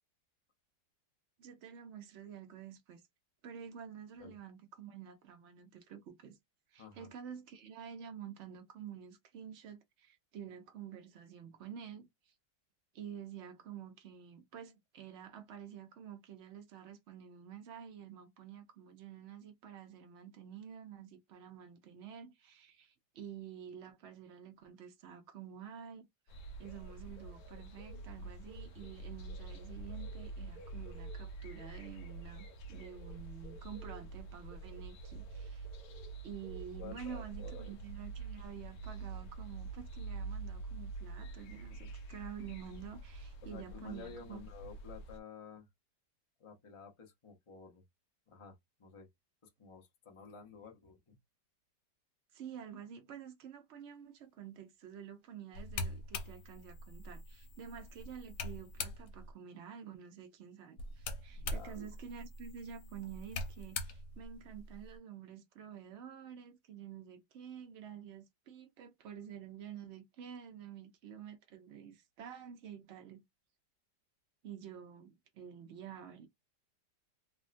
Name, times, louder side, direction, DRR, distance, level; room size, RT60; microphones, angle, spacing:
voice 1, 1.4-3.0 3.4-6.4 6.7-12.1 12.9-26.1 26.6-35.7 36.2-44.4 52.3-73.2 74.4-76.3, right 8 dB, 80° right, 0.6 m, -49 dB
sound 1, 26.3-45.2, right 3 dB, 70° left, 0.9 m, -46 dB
voice 2, 36.8-37.8 43.4-45.7 46.4-47.8 48.3-49.1 49.4-51.2 61.3-61.9, left 6 dB, 40° left, 0.4 m, -52 dB
sound 2, 55.5-59.3 60.8-65.0, left 2 dB, 90° left, 1.4 m, -43 dB
3.4 x 2.2 x 2.5 m
omnidirectional pair, 2.0 m